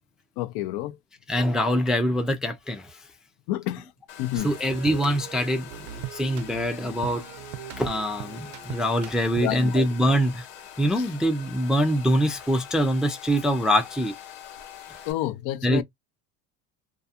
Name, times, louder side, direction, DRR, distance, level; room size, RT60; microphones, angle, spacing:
voice 1, 0.4-0.9 3.5-3.8 4.2-4.5 9.4-9.8 15.1-15.8, left 14 dB, 65° left, 0.5 m, -29 dB
voice 2, 1.3-3.0 4.3-7.2 7.8-10.5 10.8-14.1 15.6-15.8, equal, ahead, 0.3 m, -24 dB
Domestic sounds home sounds, 4.1-15.1, left 10 dB, 85° left, 0.8 m, -44 dB
sound 1, 4.4-9.7, right 12 dB, 60° right, 0.5 m, -40 dB
2.4 x 2.3 x 2.7 m
supercardioid pair, 90°, 41 cm